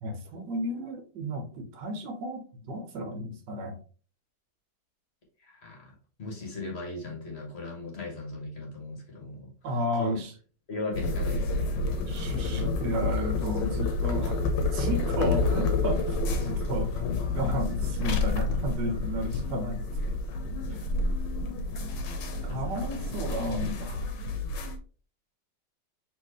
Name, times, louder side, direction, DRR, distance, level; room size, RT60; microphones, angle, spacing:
voice 1, 0.0-3.8 9.6-10.3 12.1-20.2 20.7-20.8 22.3-24.1, equal, 75° right, 5 dB, 1.6 m, -33 dB
voice 2, 5.4-5.9 6.2-9.5 10.0-10.2 10.7-11.7 14.9-15.1 20.6-20.8 22.5-22.9, left 2 dB, 40° left, 0 dB, 1.5 m, -38 dB
sound 1, 10.9-24.8, left 3 dB, 85° left, 1.5 m, -29 dB
4.4 x 3.6 x 3.1 m, 0.39 s
omnidirectional pair, 1.9 m